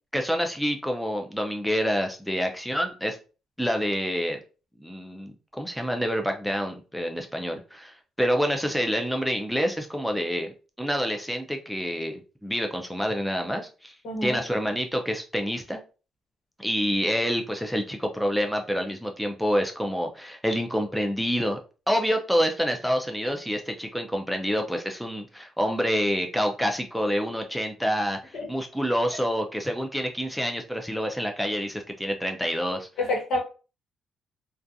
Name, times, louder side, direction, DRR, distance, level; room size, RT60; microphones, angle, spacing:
voice 1, 0.1-3.2 3.6-4.4 4.8-13.9 14.2-15.8 16.6-21.6 21.9-32.9, equal, ahead, 3 dB, 0.4 m, -27 dB
voice 2, 14.0-14.4 28.3-28.5 33.0-33.4, left 2 dB, 75° left, 0 dB, 1.1 m, -27 dB
2.3 x 2.3 x 2.6 m, 0.34 s
cardioid pair, 90°, 0 cm